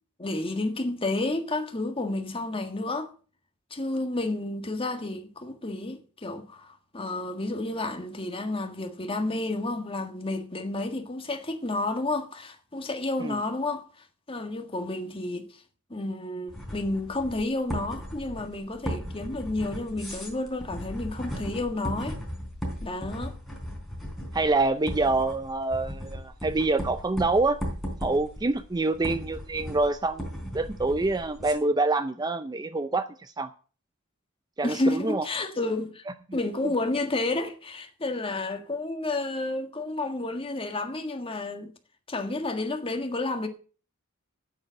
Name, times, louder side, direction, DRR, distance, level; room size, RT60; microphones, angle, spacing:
voice 1, 0.2-3.1 3.7-13.9 14.3-15.6 15.9-22.2 22.8-23.4 34.6-36.0 36.3-41.7 42.1-43.5, left 2 dB, 25° left, 1.6 m, -31 dB
sound 1, 16.5-31.5, equal, ahead, 4.1 m, -37 dB
voice 2, 24.3-27.6 28.0-33.5 34.6-35.3, right 2 dB, 20° right, 0.5 m, -26 dB
9.5 x 8.8 x 7.5 m
head